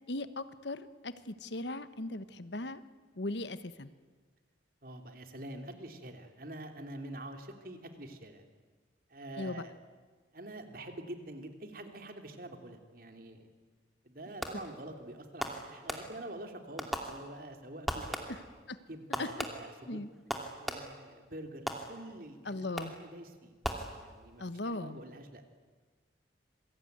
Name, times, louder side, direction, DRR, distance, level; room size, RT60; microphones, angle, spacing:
voice 1, 0.1-2.8 3.2-3.9 9.4-9.6 18.3-18.4 18.7-18.8 19.2-19.3 19.9-20.1 22.4-22.9 24.4-25.0, left 2 dB, 70° left, 13 dB, 1.2 m, -38 dB
voice 2, 4.8-8.4 9.1-9.7 10.3-13.5 14.0-18.3 18.9-20.0 20.6-23.5 23.9-24.4 24.7-25.4, right 1 dB, 50° right, 5 dB, 3.1 m, -46 dB
Fireworks, 14.4-14.8 15.4-16.4 16.8-17.6 17.9-18.6 19.1-21.1 21.7-22.3 22.8-23.2 23.6-24.4, equal, ahead, 2.5 m, -39 dB
27.0 x 23.0 x 9.5 m, 1.4 s
head